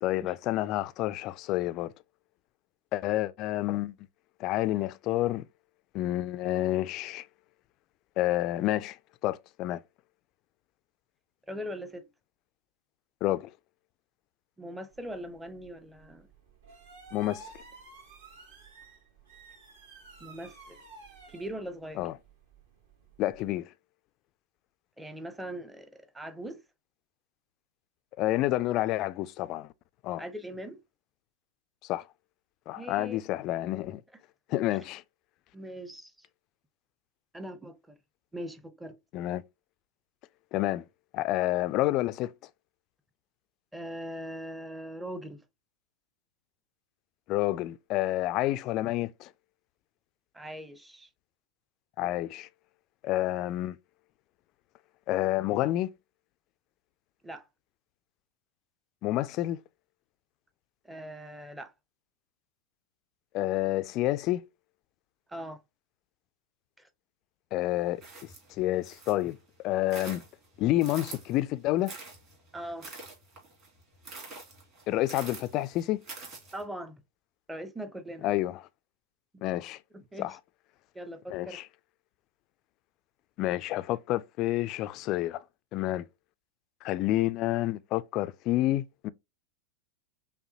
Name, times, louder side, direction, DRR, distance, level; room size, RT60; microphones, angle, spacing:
voice 1, 0.0-1.9 2.9-3.9 4.4-5.4 5.9-7.3 8.2-9.0 9.2-9.8 13.2-13.5 17.1-17.5 22.0-22.1 23.2-23.7 28.2-29.7 30.0-30.2 31.9-32.0 32.7-34.0 34.5-35.0 39.1-39.4 40.5-40.8 41.1-42.3 47.3-49.3 52.0-52.5 53.0-53.8 55.1-55.9 59.0-59.6 63.3-64.4 67.5-68.0 68.6-69.4 69.6-70.2 70.6-71.9 74.9-76.0 78.2-78.6 79.4-79.8 80.2-80.4 81.3-81.6 83.4-85.4 85.7-86.1 86.8-89.1, left 15 dB, 40° left, 0.3 m, -29 dB
voice 2, 11.5-12.1 14.6-16.3 20.2-20.8 21.3-22.1 25.0-26.6 30.2-30.8 32.7-33.2 35.5-36.3 37.3-37.9 38.3-39.0 43.7-45.4 50.3-51.1 57.2-57.5 60.8-61.7 65.3-65.6 66.8-66.9 72.5-72.9 76.5-77.0 77.5-78.3 79.3-79.4 79.9-80.4 80.9-81.6, equal, 5° right, 0.6 m, -41 dB
sound 1, 14.9-23.5, right 4 dB, 55° right, 1.5 m, -53 dB
sound 2, 68.0-69.3 69.7-71.4 71.9-76.6, right 3 dB, 35° right, 2.3 m, -46 dB
5.4 x 2.2 x 2.6 m
figure-of-eight pair, 90°, 0 cm